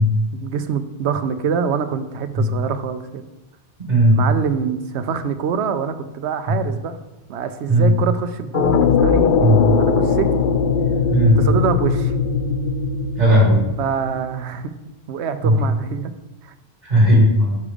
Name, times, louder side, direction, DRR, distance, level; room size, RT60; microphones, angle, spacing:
voice 1, 0.3-3.2 4.2-7.0 7.3-9.4 9.8-10.3 11.4-12.1 13.8-14.7 15.1-16.1 16.4-16.5, right 6 dB, 75° right, 10 dB, 0.9 m, -25 dB
voice 2, 3.9-4.2 6.5-6.6 7.7-8.0 9.4-9.6 11.1-11.4 13.2-13.6 15.4-15.6 16.8-17.5, equal, 40° right, -4 dB, 1.9 m, -15 dB
sound 1, 8.5-14.4, left 5 dB, 55° left, 0.7 m, -19 dB
7.0 x 4.9 x 5.0 m, 1.0 s
omnidirectional pair, 1.2 m